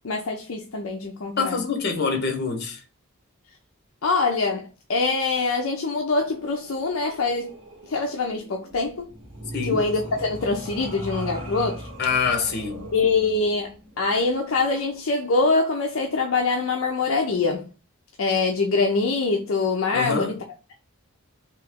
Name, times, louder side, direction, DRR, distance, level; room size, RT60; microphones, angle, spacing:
voice 1, 0.0-1.6 4.0-7.6 7.9-9.1 9.6-11.9 12.9-17.6 18.2-20.4, left 3 dB, 65° left, 0.5 m, -24 dB
voice 2, 1.4-2.8 9.5-9.8 12.0-12.9 19.9-20.4, left 5 dB, 45° left, 0.9 m, -25 dB
sound 1, 6.2-15.1, equal, 60° right, 1.5 m, -39 dB
3.1 x 2.8 x 3.5 m
head